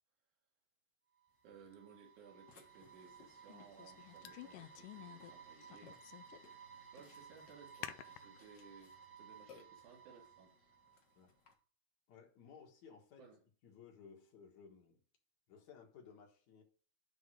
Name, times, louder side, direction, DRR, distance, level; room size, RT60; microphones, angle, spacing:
sound 1, 1.2-11.2, right 6 dB, 30° right, 1.6 m, -58 dB
voice 1, 1.4-6.0 6.3-6.6 6.9-10.6 13.2-13.4, right 5 dB, 70° right, 3.1 m, -60 dB
sound 2, 1.7-1.8 3.5-5.3 5.6-6.6 7.0-7.1 7.8-8.4, left 14 dB, 85° left, 2.1 m, -51 dB
Burping eructation, 2.5-11.5, left 5 dB, 50° left, 1.5 m, -66 dB
voice 2, 12.1-13.3 13.6-15.0 15.5-16.6, left 6 dB, 65° left, 2.7 m, -58 dB
9.4 x 3.6 x 6.1 m
omnidirectional pair, 3.6 m